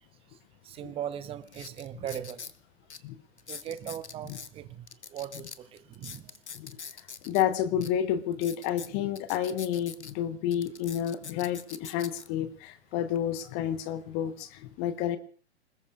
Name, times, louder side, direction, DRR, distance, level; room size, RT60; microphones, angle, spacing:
voice 1, 0.6-2.4 3.5-6.3, right 10 dB, 15° right, 13 dB, 0.9 m, -39 dB
sound 1, 0.8-0.9 1.4-2.6 2.9-3.0 3.4-4.5 4.9-7.4 7.8-7.9 8.3-10.1 10.5-12.3 12.9-13.2, left 6 dB, 80° left, 1.0 m, -44 dB
voice 2, 7.2-15.2, left 10 dB, 30° left, 11 dB, 1.1 m, -30 dB
25.5 x 20.5 x 2.5 m, 0.42 s
figure-of-eight pair, 115°, 34 cm